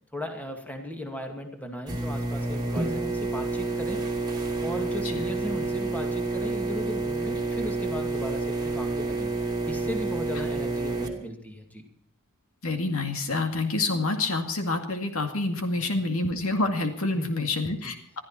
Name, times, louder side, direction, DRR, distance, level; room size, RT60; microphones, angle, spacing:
voice 1, 0.1-4.3 4.6-9.3 9.7-11.8 15.7-16.0 17.2-17.5 17.8-17.9, equal, 5° left, 3 dB, 2.4 m, -36 dB
sound 1, 1.9-11.1, right 3 dB, 20° right, 2.6 m, -29 dB
voice 2, 12.6-18.2, left 2 dB, 70° left, 5 dB, 2.3 m, -27 dB
22.0 x 13.5 x 4.4 m, 0.63 s
head